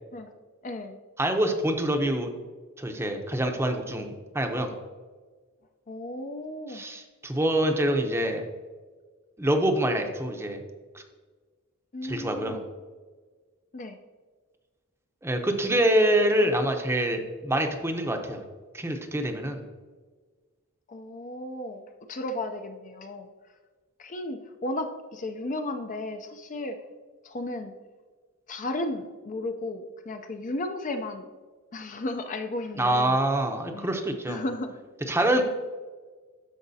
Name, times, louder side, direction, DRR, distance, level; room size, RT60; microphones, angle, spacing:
voice 1, 0.6-1.0 5.9-6.8 11.9-12.6 13.7-14.0 20.9-21.8 22.1-23.3 24.0-26.8 27.2-27.7 28.5-31.2 31.7-33.2 33.7-33.9 34.3-34.8, left 1 dB, 35° left, 7 dB, 0.5 m, -34 dB
voice 2, 1.2-2.3 2.8-4.7 6.7-8.4 9.4-10.6 10.9-11.0 12.0-12.6 15.2-18.4 18.7-19.6 32.7-34.4 35.1-35.4, right 1 dB, 10° right, 5 dB, 0.7 m, -25 dB
13.0 x 4.9 x 2.7 m, 1.4 s
head